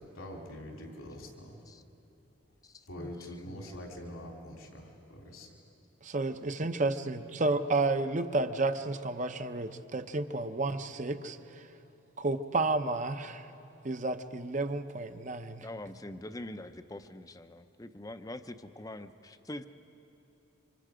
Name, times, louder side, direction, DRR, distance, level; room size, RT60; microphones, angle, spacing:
voice 1, 0.0-1.6 2.9-5.5, left 1 dB, 85° left, 0 dB, 3.2 m, -44 dB
voice 2, 2.6-3.8 15.6-19.7, left 1 dB, 15° left, 9 dB, 0.6 m, -44 dB
voice 3, 6.0-11.6 12.2-13.5 13.8-15.7, right 2 dB, 35° right, 9 dB, 0.8 m, -31 dB
29.5 x 25.5 x 5.0 m, 2.9 s
head